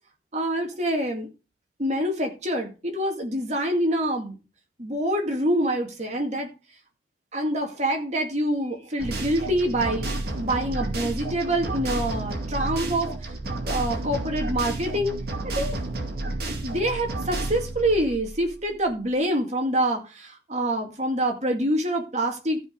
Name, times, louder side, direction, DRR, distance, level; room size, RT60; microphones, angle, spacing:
voice 1, 0.3-1.3 1.8-4.4 4.8-6.5 7.3-10.1 10.4-13.1 13.6-15.2 15.4-15.8 16.6-22.6, right 1 dB, 35° right, 2.3 m, -26 dB
sound 1, 9.0-18.9, right 2 dB, 55° right, 2.3 m, -31 dB
14.0 x 5.0 x 5.3 m
head